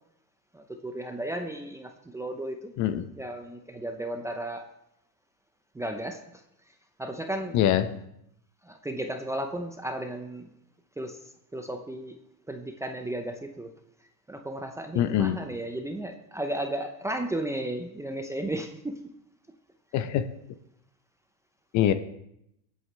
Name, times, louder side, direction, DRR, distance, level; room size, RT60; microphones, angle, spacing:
voice 1, 0.5-2.7 3.2-4.6 5.7-6.2 7.0-7.6 8.7-10.5 11.0-11.2 11.5-12.2 12.5-13.7 14.3-18.9, right 1 dB, 5° right, 5 dB, 0.7 m, -34 dB
voice 2, 2.8-3.1 7.5-8.0 14.9-15.4 19.9-20.3 21.7-21.9, left 11 dB, 35° left, 11 dB, 0.8 m, -24 dB
22.0 x 8.3 x 3.3 m, 0.79 s
supercardioid pair, 125°, 49 cm